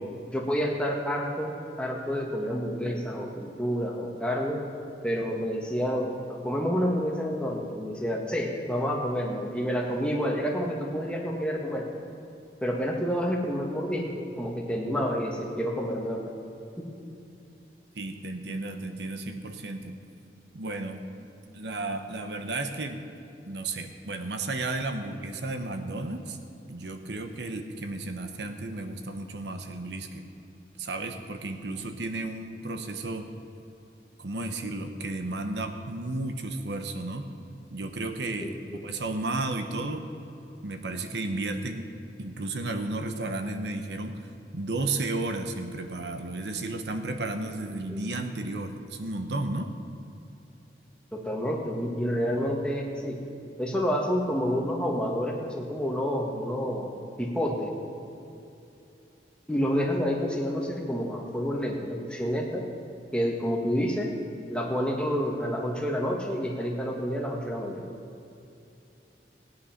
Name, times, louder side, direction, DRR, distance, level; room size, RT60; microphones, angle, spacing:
voice 1, 0.3-4.6 5.0-12.0 12.6-16.2 16.8-16.9 38.4-38.8 47.9-48.1 51.1-53.2 53.6-56.9 57.2-57.7 59.5-62.7 63.1-64.1 64.5-67.8, equal, 5° left, -1 dB, 1.5 m, -29 dB
voice 2, 18.0-19.9 20.5-21.0 21.5-23.0 23.5-26.4 26.7-30.2 30.8-33.3 34.2-37.2 37.7-38.5 38.8-40.1 40.6-41.9 42.2-44.2 44.5-49.7, right 2 dB, 75° right, 6 dB, 1.0 m, -33 dB
17.5 x 9.8 x 5.9 m, 2.7 s
head